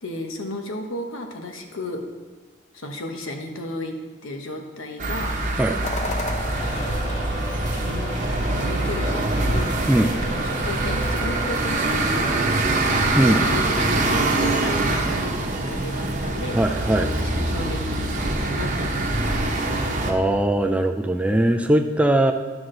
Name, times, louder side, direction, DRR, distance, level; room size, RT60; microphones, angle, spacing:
voice 1, 0.0-2.0 2.7-3.9 4.2-5.3 6.6-7.0 7.8-8.1 8.5-9.8 10.3-12.6 13.0-16.6 17.1-19.8, left 2 dB, 85° left, 3 dB, 1.1 m, -34 dB
sound 1, 5.0-20.1, right 2 dB, 35° right, 0.9 m, -24 dB
sound 2, 5.8-15.1, left 2 dB, 35° left, 0.6 m, -39 dB
sound 3, 6.5-11.6, equal, 65° left, 2.2 m, -32 dB
voice 2, 13.1-13.5 16.5-17.1 20.0-22.3, right 1 dB, 5° right, 5 dB, 0.3 m, -20 dB
11.0 x 6.0 x 3.8 m, 1.3 s
head